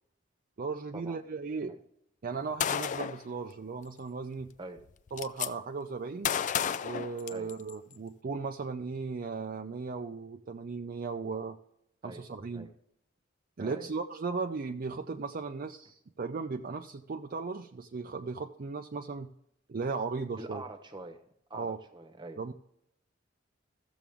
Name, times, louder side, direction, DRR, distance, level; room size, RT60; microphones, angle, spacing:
voice 1, 0.6-1.8 2.2-4.5 5.1-6.3 6.8-11.6 12.0-12.7 13.6-19.3 19.7-20.6 21.5-21.8 22.4-22.5, right 4 dB, 50° right, 0.4 m, -36 dB
Gunshot gunfire, 2.6-3.2 4.4-4.5 4.8-5.5 6.2-7.7, left 8 dB, 40° left, 0.3 m, -31 dB
voice 2, 20.4-21.2 21.5-22.4, right 2 dB, 25° right, 1.0 m, -44 dB
14.0 x 7.1 x 3.6 m
head